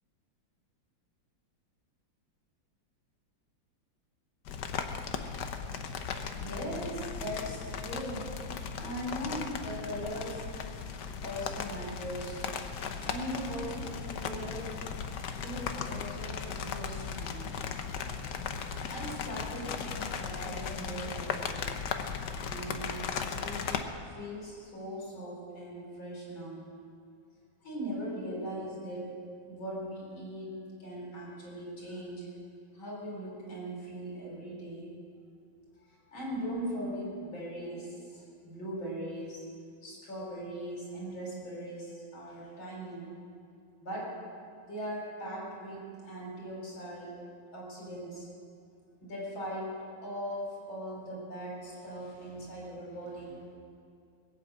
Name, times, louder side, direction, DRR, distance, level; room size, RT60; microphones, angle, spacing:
sound 1, 4.5-23.8, left 6 dB, 65° left, 1.4 m, -37 dB
voice 1, 6.4-8.3 8.8-10.4 11.2-12.4 13.0-14.8 15.3-17.5 18.9-21.7 22.4-26.7 27.6-29.1 29.5-32.3 32.7-34.9 35.8-39.4 39.8-43.1 43.8-44.2 44.6-47.1 47.5-48.3 49.0-53.4, equal, 80° left, -3 dB, 5.1 m, -40 dB
20.5 x 9.0 x 7.7 m, 2.4 s
omnidirectional pair, 2.1 m